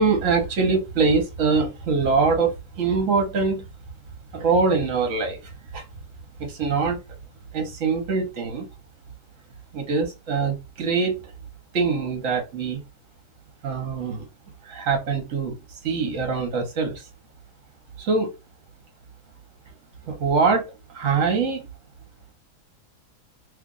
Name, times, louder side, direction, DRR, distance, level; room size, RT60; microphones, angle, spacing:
voice 1, 0.0-3.7 4.3-5.4 5.7-5.8 6.4-7.0 7.5-8.7 9.7-11.2 11.7-12.8 13.6-14.3 14.6-15.6 15.8-17.1 18.0-18.3 20.1-21.7, right 4 dB, 55° right, 1.3 m, -23 dB
3.1 x 2.4 x 3.9 m
omnidirectional pair, 1.7 m